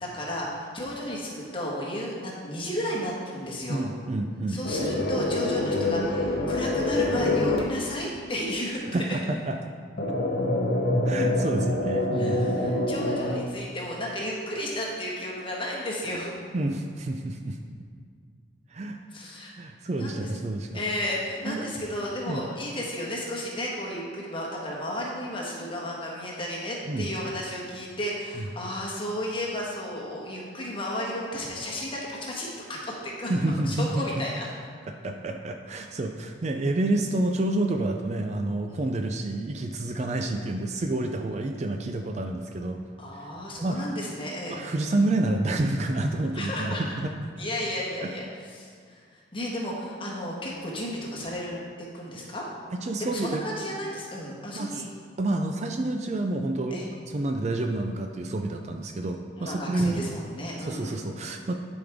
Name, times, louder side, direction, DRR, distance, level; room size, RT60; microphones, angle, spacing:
voice 1, 0.0-3.8 4.5-9.0 12.1-16.3 19.1-19.5 19.9-20.3 20.7-32.5 32.8-33.3 33.6-34.5 38.7-38.8 43.0-44.6 46.3-46.8 47.4-49.0 49.3-51.6 51.9-52.4 53.0-54.8 56.7-56.9 59.4-61.0, left 1 dB, 25° left, -4 dB, 1.4 m, -33 dB
voice 2, 3.7-4.6 8.9-9.6 11.0-12.4 16.5-17.6 18.7-19.0 19.6-20.8 21.5-21.6 22.3-22.4 26.9-27.1 28.4-28.5 33.3-34.1 34.9-42.8 43.2-43.3 43.6-43.8 44.5-47.3 48.0-48.1 52.7-53.4 54.5-54.8 55.2-56.8 57.1-60.1 60.6-61.5, right 2 dB, 35° right, 4 dB, 0.4 m, -29 dB
sound 1, 4.6-7.6 10.0-13.4, left 1 dB, 50° left, 0.9 m, -25 dB
11.5 x 5.1 x 3.5 m, 2.1 s
head